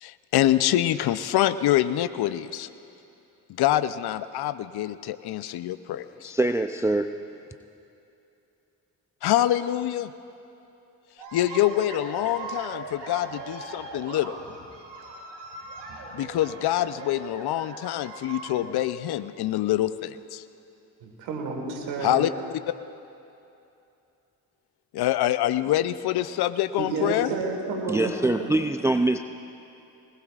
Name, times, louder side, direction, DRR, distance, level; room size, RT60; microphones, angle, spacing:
voice 1, 0.0-2.7 3.6-6.3 9.2-10.1 11.3-14.4 16.1-20.4 22.0-22.3 24.9-27.3, left 13 dB, 65° left, 13 dB, 0.6 m, -25 dB
voice 2, 6.2-7.1 27.9-29.2, right 2 dB, 5° right, 8 dB, 0.4 m, -24 dB
sound 1, 11.2-18.7, right 3 dB, 75° right, 2.1 m, -40 dB
voice 3, 21.0-22.3 26.8-28.5, right 3 dB, 90° right, 2 dB, 1.7 m, -30 dB
20.5 x 20.0 x 2.5 m, 2.8 s
hypercardioid pair, 45°, 42 cm